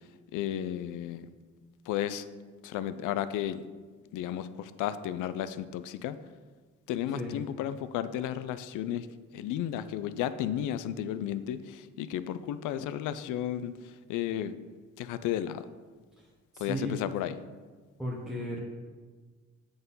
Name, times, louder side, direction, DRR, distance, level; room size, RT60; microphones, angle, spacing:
voice 1, 0.3-1.3 1.9-2.3 2.6-3.6 4.1-6.2 6.9-9.1 9.3-14.5 15.0-15.6 16.6-17.4, left 11 dB, 90° left, 13 dB, 0.5 m, -33 dB
voice 2, 16.2-17.0 18.0-18.6, equal, ahead, -4 dB, 1.0 m, -36 dB
7.9 x 3.9 x 5.4 m, 1.4 s
cardioid pair, 90°, 30 cm